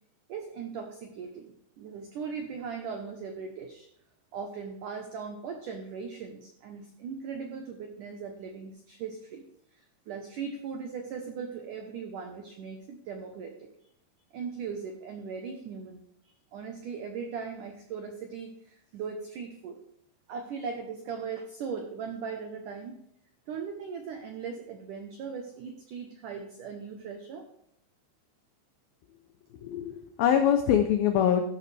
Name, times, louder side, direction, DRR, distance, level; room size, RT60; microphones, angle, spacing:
voice 1, 0.3-3.9 4.3-9.5 9.7-13.7 14.3-19.8 20.3-23.0 23.5-27.4, right 6 dB, 90° right, 4 dB, 1.8 m, -39 dB
voice 2, 29.6-31.4, left 9 dB, 90° left, 6 dB, 2.0 m, -24 dB
14.0 x 11.0 x 3.4 m, 0.72 s
omnidirectional pair, 5.3 m